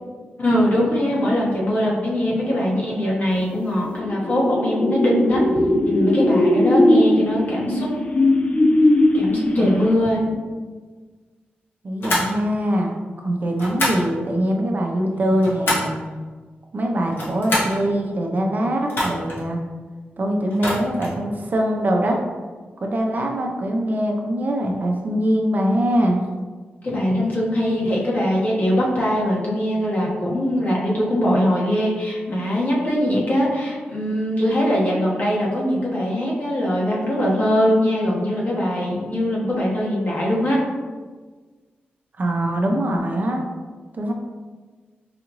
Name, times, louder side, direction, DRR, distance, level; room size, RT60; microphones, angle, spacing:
voice 1, 0.4-5.4 5.8-7.9 9.1-10.4 26.8-40.6, equal, 50° left, -5 dB, 1.3 m, -21 dB
sound 1, 3.6-10.1, left 1 dB, 35° left, 0.5 m, -19 dB
voice 2, 9.6-10.0 11.8-12.9 13.2-15.9 16.7-19.6 20.2-22.2 22.8-26.2 42.2-43.4 43.9-44.1, right 1 dB, 50° right, 1 dB, 0.6 m, -22 dB
sound 2, 12.0-12.3 13.6-14.1 15.1-16.0 17.0-17.8 18.9-19.4 20.5-21.2, left 1 dB, 70° left, 1.2 m, -25 dB
4.8 x 2.5 x 3.0 m, 1.4 s
cardioid pair, 65°, 4 cm